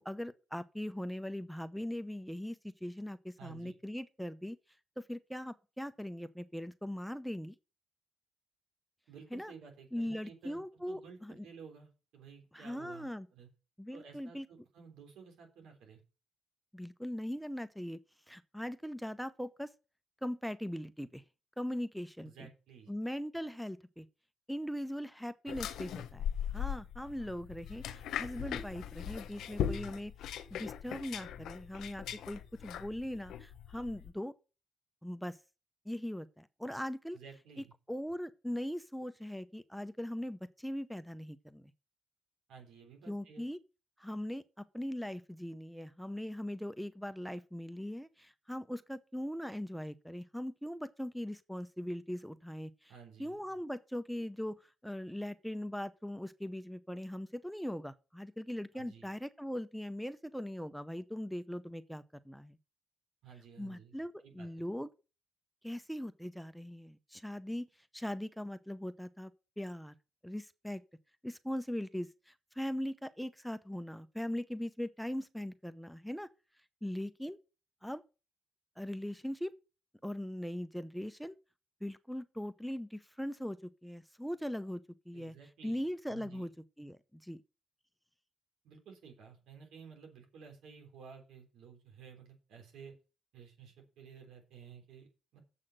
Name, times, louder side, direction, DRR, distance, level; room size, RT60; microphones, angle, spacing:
voice 1, 0.0-4.6 5.0-7.6 9.3-9.5 9.9-11.5 12.5-13.3 13.8-14.5 16.7-18.0 18.3-19.7 20.2-21.2 21.6-22.5 22.9-24.1 24.5-26.3 26.5-30.1 30.5-34.4 35.0-35.4 35.9-37.2 37.9-41.7 43.1-43.6 44.0-52.9 53.2-62.6 63.6-64.9 65.6-67.7 67.9-69.3 69.6-69.9 70.2-70.8 71.2-76.3 76.8-77.4 77.8-78.0 78.8-79.5 80.0-81.4 81.8-84.8 85.1-85.3 85.6-86.5 86.8-87.4, equal, ahead, 0.6 m, -40 dB
voice 2, 3.4-3.7 9.1-13.5 13.9-16.0 22.2-22.9 37.1-37.7 42.5-43.4 52.9-53.4 58.7-59.1 63.2-64.7 85.1-85.8 86.1-86.5 88.6-92.9 93.3-95.4, right 6 dB, 80° right, 3.6 m, -54 dB
sound 1, 25.5-34.1, left 9 dB, 80° left, 0.9 m, -39 dB
7.8 x 5.8 x 7.7 m
cardioid pair, 90°, 0 cm